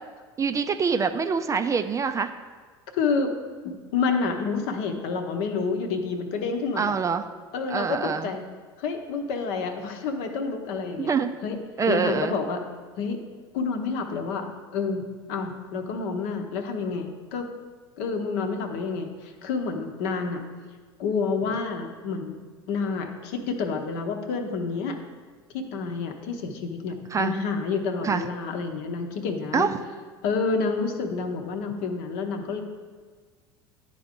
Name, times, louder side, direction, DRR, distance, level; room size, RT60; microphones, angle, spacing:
voice 1, 0.4-2.3 6.8-7.2 7.7-8.3 11.0-11.3 11.8-12.4 27.1-27.3 28.0-28.2 29.5-29.7, right 5 dB, 25° right, 9 dB, 0.4 m, -25 dB
voice 2, 3.0-3.3 3.6-6.9 7.5-8.4 8.8-11.1 11.4-11.6 11.9-12.6 13.0-13.2 13.5-17.5 18.0-20.4 21.0-22.3 22.7-25.0 25.5-29.7 30.2-32.6, left 4 dB, 65° left, 5 dB, 0.9 m, -29 dB
10.5 x 3.8 x 3.7 m, 1.5 s
hypercardioid pair, 80°, 14 cm